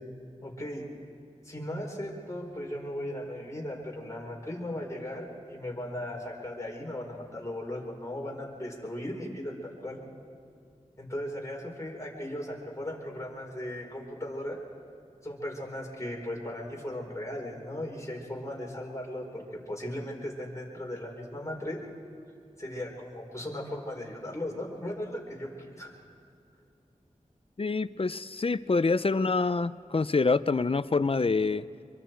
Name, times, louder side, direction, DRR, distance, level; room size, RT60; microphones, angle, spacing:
voice 1, 0.4-0.8 1.4-10.0 11.0-14.6 15.2-21.8 22.6-25.9, left 1 dB, 25° left, -1 dB, 4.6 m, -37 dB
voice 2, 27.6-31.6, left 4 dB, 45° left, 15 dB, 0.6 m, -26 dB
25.0 x 23.5 x 4.6 m, 2.5 s
wide cardioid pair, 50°, 13 cm